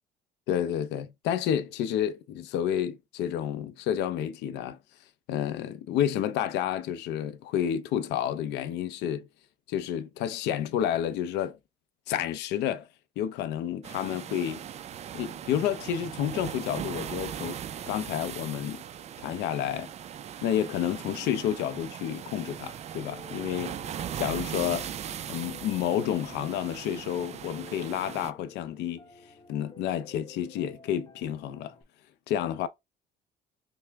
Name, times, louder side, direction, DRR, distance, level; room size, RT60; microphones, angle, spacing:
voice 1, 0.5-4.8 5.3-9.3 9.7-11.6 12.1-12.9 13.2-14.6 15.1-17.6 17.9-18.8 19.2-19.9 20.4-23.8 24.2-24.9 25.3-29.0 29.5-31.7 32.3-32.7, left 10 dB, 85° left, 0.5 m, -30 dB
sound 1, 13.8-28.3, right 9 dB, 40° right, 0.4 m, -39 dB
Piano, 23.1-31.8, left 3 dB, 20° left, 0.9 m, -52 dB
5.7 x 2.1 x 3.4 m
cardioid pair, 110°, 17 cm